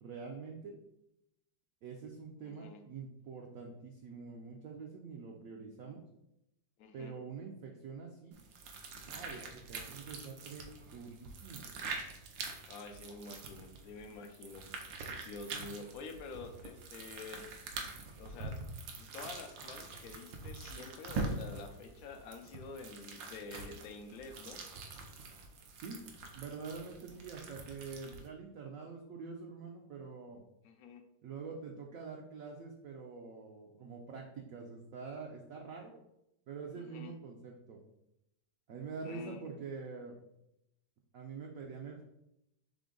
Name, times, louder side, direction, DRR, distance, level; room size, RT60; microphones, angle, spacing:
voice 1, 0.0-0.7 1.8-6.0 6.9-8.3 9.1-11.7 25.8-26.0 26.3-30.4 31.2-35.9 36.5-37.8 38.7-40.1 41.1-42.0, right 5 dB, 70° right, 0 dB, 0.8 m, -46 dB
voice 2, 2.4-2.8 6.8-7.1 12.7-14.7 15.2-17.5 18.2-18.6 19.0-24.6 30.6-31.0 36.8-37.1 39.0-39.5, left 4 dB, 75° left, 6 dB, 0.8 m, -48 dB
sound 1, 8.3-28.3, right 3 dB, 85° right, 1.4 m, -45 dB
3.8 x 3.4 x 3.7 m, 0.84 s
omnidirectional pair, 2.0 m